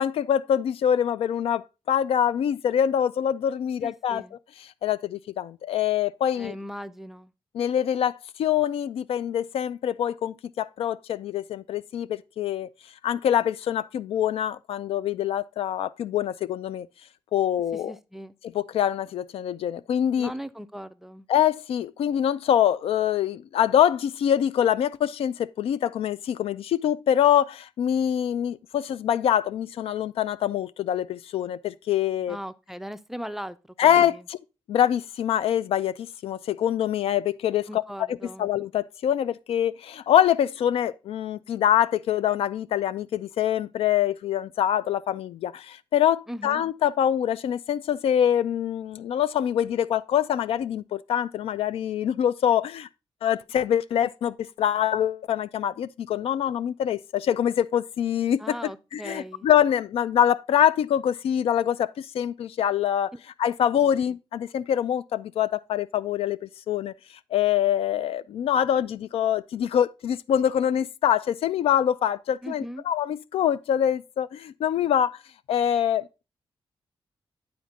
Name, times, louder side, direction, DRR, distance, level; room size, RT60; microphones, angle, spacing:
voice 1, 0.0-4.2 4.8-6.5 7.5-12.7 13.0-16.9 17.3-17.9 18.5-20.3 21.3-32.4 33.8-34.4 34.7-38.1 38.4-52.9 53.2-63.1 63.4-66.9 67.3-75.2 75.5-76.1, left 10 dB, 90° left, 0.4 m, -24 dB
voice 2, 3.8-4.4 6.4-7.3 17.7-18.4 20.2-21.3 32.3-34.2 37.7-38.5 46.3-46.6 58.4-59.5 72.4-72.8, equal, 5° right, 0.3 m, -38 dB
9.5 x 4.2 x 3.6 m
wide cardioid pair, 150°, 10 cm